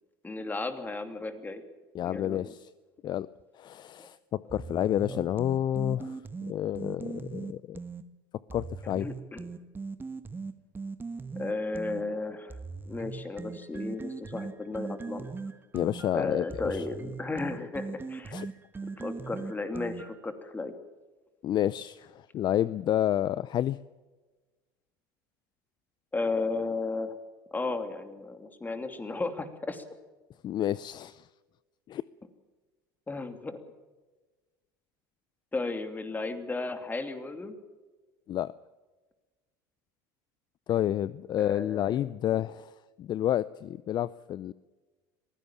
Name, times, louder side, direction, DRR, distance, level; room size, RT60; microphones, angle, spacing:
voice 1, 0.2-1.6 2.0-2.5 4.0-4.1 4.8-5.2 8.8-9.5 11.3-12.6 12.9-15.3 16.1-18.4 18.8-20.8 26.1-27.2 27.5-29.8 33.1-33.6 35.5-37.6 41.4-42.0, left 3 dB, 15° left, 8 dB, 2.7 m, -34 dB
voice 2, 1.9-2.7 3.0-3.3 3.6-6.2 6.5-7.8 8.5-9.1 15.7-16.4 16.7-16.8 18.3-18.5 21.4-23.8 30.4-31.2 31.9-32.0 38.3-38.5 40.7-42.7 43.0-44.5, left 11 dB, 40° left, 18 dB, 0.6 m, -29 dB
sound 1, 4.5-8.0 8.5-12.0 12.5-20.3, right 4 dB, 20° right, 1.3 m, -40 dB
23.0 x 16.0 x 7.3 m, 1.3 s
supercardioid pair, 95°, 11 cm